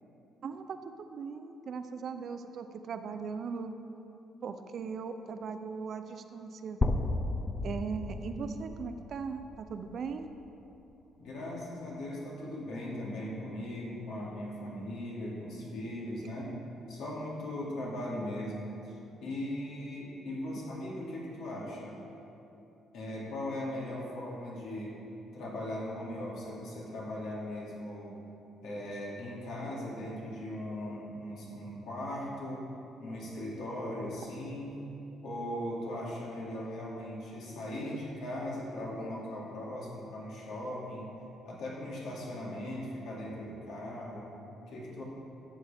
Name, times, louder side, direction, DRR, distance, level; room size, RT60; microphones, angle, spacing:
voice 1, 0.4-3.8 4.4-6.8 7.6-10.3, right 5 dB, 45° right, 8 dB, 0.5 m, -39 dB
sound 1, 6.8-10.7, left 2 dB, 15° left, 0.5 m, -34 dB
voice 2, 11.2-16.5 16.9-22.0 22.9-25.0 25.3-28.1 28.6-32.6 33.0-34.8 35.2-41.2 41.4-44.3 44.7-45.0, left 1 dB, 70° left, -4 dB, 2.4 m, -39 dB
12.5 x 7.9 x 3.5 m, 2.9 s
cardioid pair, 145°, 0 cm